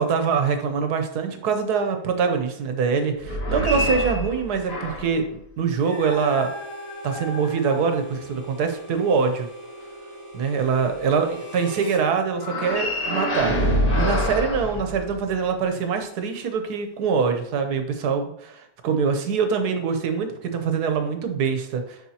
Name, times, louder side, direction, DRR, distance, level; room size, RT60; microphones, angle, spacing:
voice 1, 0.0-6.5 7.0-9.5 10.3-22.0, right 5 dB, 75° right, 6 dB, 1.4 m, -24 dB
sound 1, 3.2-5.2 5.8-8.2 12.3-15.5, equal, 55° left, 2.2 m, -27 dB
Harmonica, 5.7-12.1, equal, 10° right, 1.3 m, -41 dB
10.5 x 4.4 x 2.8 m, 0.71 s
omnidirectional pair, 1.7 m